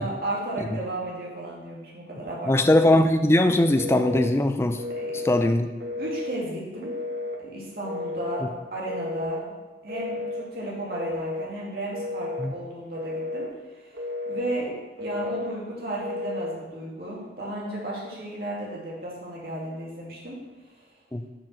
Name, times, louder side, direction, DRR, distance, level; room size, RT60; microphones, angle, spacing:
voice 1, 0.0-2.8 4.9-5.1 6.0-6.9 7.4-8.5 8.7-9.5 9.8-14.0 14.3-14.7 15.0-20.4, right 1 dB, 55° right, -5 dB, 2.6 m, -34 dB
voice 2, 2.5-4.8 5.2-5.7 12.4-12.5 21.1-21.2, left 1 dB, 15° left, 8 dB, 0.4 m, -20 dB
Telephone, 3.8-4.3 4.8-5.4 5.8-6.4 6.8-7.4 7.8-8.4 8.9-9.4 9.9-10.5 10.9-11.5 11.9-12.5 12.9-13.5 13.9-14.5 15.0-15.6 16.0-16.6, left 2 dB, 80° right, 1.2 m, -32 dB
7.2 x 5.3 x 6.3 m, 1.2 s
head